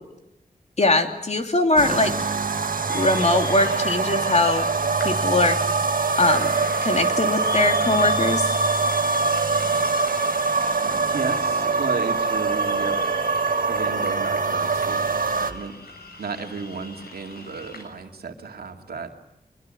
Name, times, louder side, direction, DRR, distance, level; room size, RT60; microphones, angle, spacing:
voice 1, 0.8-2.1 2.9-4.6 5.0-5.6 6.2-6.5 6.8-8.6, left 2 dB, 45° left, 5 dB, 3.0 m, -21 dB
sound 1, 1.8-15.5, right 4 dB, 65° right, 1.5 m, -23 dB
sound 2, 2.9-17.8, left 3 dB, 90° left, 6.9 m, -40 dB
voice 2, 10.8-13.1 13.7-15.7 16.2-19.1, right 4 dB, 90° right, 4 dB, 2.4 m, -33 dB
24.5 x 22.0 x 9.1 m, 0.85 s
cardioid pair, 60°, 16 cm